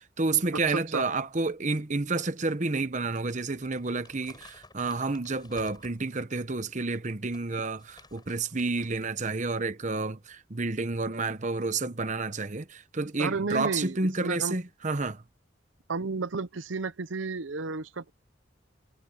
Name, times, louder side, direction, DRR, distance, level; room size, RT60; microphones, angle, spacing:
voice 1, 0.0-15.2, right 3 dB, 40° right, 1.0 m, -30 dB
voice 2, 0.7-1.0 13.2-14.6 15.9-18.1, right 4 dB, 80° right, 0.8 m, -32 dB
Crumpling crinkling, 3.0-6.2 6.8-9.1 9.4-9.6, left 3 dB, 20° left, 4.9 m, -54 dB
head